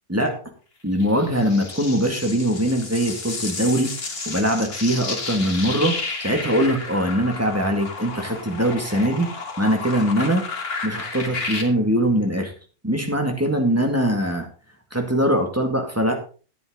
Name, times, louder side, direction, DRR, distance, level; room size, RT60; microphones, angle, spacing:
voice 1, 0.8-9.3 9.6-10.4 10.8-12.5 12.8-14.5 14.9-16.1, equal, 10° right, 3 dB, 1.9 m, -22 dB
sound 1, 1.0-11.6, left 4 dB, 85° left, 2.5 m, -32 dB
11.0 x 9.6 x 3.9 m, 0.37 s
omnidirectional pair, 1.5 m